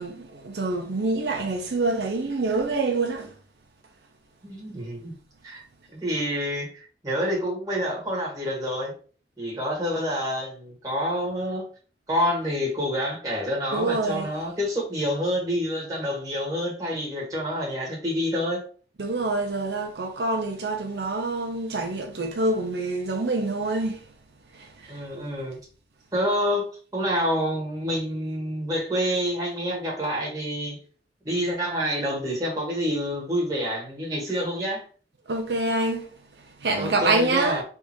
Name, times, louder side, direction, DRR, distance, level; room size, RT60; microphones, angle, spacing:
voice 1, 0.0-3.3 13.7-14.3 19.0-24.1 24.5-25.0 35.3-36.1 36.4-37.6, right 2 dB, 75° right, 0.7 m, -26 dB
voice 2, 4.4-5.1 5.4-5.6 5.9-8.9 9.4-11.7 12.1-18.6 24.9-25.6 26.1-30.8 31.2-34.8 36.7-37.6, equal, 20° right, 1.7 m, -27 dB
3.6 x 2.7 x 4.5 m
head